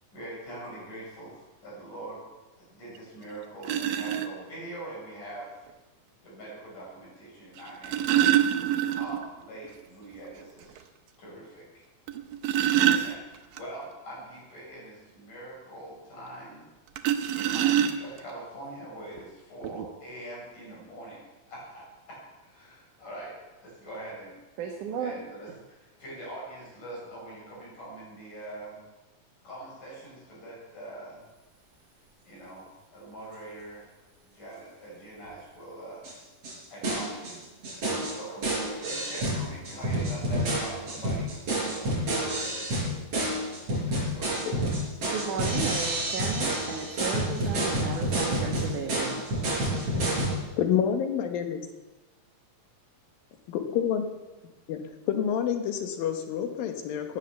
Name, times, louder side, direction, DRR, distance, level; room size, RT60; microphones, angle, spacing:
voice 1, 0.1-2.2 2.6-5.7 6.2-8.3 8.8-10.8 11.2-11.8 12.8-16.7 17.3-23.3 23.6-24.4 25.0-28.8 29.4-31.2 32.3-33.9 34.2-36.0 36.7-37.4 38.1-41.3 41.6-43.0 43.8-44.3, right 1 dB, 65° left, -4 dB, 8.4 m, -43 dB
sound 1, 2.9-3.0 3.6-4.3 5.7-5.8 7.6-9.3 9.6-9.7 10.1-10.2 10.8-10.9 12.1-13.6 17.0-18.3 19.2-19.3 19.6-19.9, right 11 dB, 85° right, 2.6 m, -25 dB
voice 2, 24.6-25.1 45.0-49.2, right 6 dB, 65° right, 1 dB, 2.8 m, -34 dB
sound 2, 36.0-36.1 36.4-36.5 36.8-37.3 37.6-50.3, right 1 dB, 45° right, 6.3 m, -29 dB
voice 3, 50.6-51.6 53.7-54.1 54.7-54.8 55.1-57.2, left 8 dB, 85° left, 6 dB, 3.1 m, -28 dB
17.0 x 10.0 x 7.0 m, 1.1 s
omnidirectional pair, 4.0 m